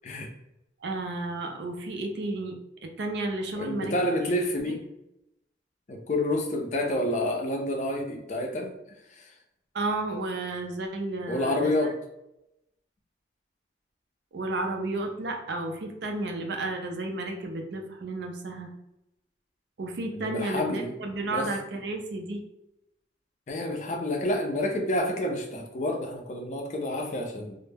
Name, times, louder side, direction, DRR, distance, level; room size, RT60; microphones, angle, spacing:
voice 1, 0.8-2.6 2.8-3.9 4.6-4.7 9.7-11.7 14.3-18.7 19.8-22.4, right 2 dB, 65° right, 3 dB, 0.4 m, -32 dB
voice 2, 3.6-4.8 5.9-8.7 9.1-9.3 11.3-12.0 20.1-21.0 21.3-21.5 23.5-27.6, left 1 dB, 40° left, 2 dB, 0.4 m, -29 dB
2.1 x 2.0 x 3.2 m, 0.86 s
head